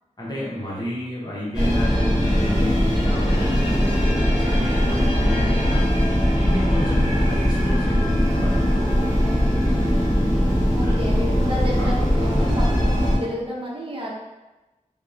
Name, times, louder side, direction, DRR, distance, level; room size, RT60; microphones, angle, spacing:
voice 1, 0.2-4.0 4.4-6.0 6.3-9.1 10.8-11.0 11.8-11.9, left 1 dB, 30° left, -7 dB, 0.7 m, -31 dB
sound 1, 1.5-13.2, equal, 5° right, 1.4 m, -20 dB
voice 2, 4.4-4.7 10.7-14.1, equal, 40° right, -3 dB, 0.6 m, -31 dB
2.7 x 2.0 x 2.4 m, 1.1 s
wide cardioid pair, 55°, 13 cm